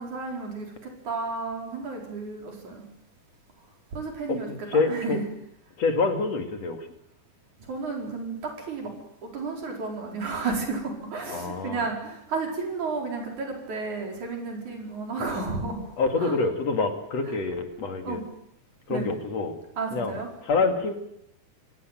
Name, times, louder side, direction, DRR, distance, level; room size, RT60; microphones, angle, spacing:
voice 1, 0.0-2.8 3.9-5.2 7.7-8.9 9.2-15.9 16.2-16.3 18.0-18.2 18.9-19.1 19.8-20.3, right 4 dB, 70° right, 2 dB, 6.3 m, -32 dB
voice 2, 4.3-5.2 5.8-6.9 11.3-11.9 16.0-18.2 18.9-19.6 19.9-20.9, left 3 dB, 55° left, 6 dB, 3.4 m, -27 dB
26.5 x 17.0 x 9.3 m, 0.75 s
omnidirectional pair, 3.6 m